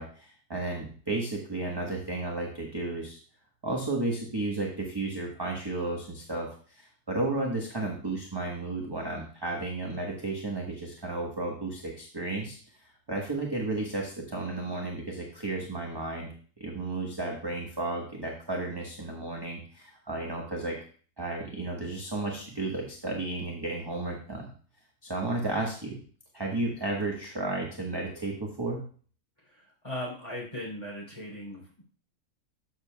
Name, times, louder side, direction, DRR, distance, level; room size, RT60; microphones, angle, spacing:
voice 1, 0.0-3.2 3.6-12.6 12.8-16.3 16.6-20.8 21.2-24.5 25.0-26.0 26.3-28.8, right 2 dB, 15° right, -1 dB, 1.0 m, -33 dB
voice 2, 29.8-31.6, left 1 dB, 20° left, -3 dB, 3.4 m, -37 dB
12.5 x 6.8 x 2.3 m, 0.43 s
omnidirectional pair, 1.6 m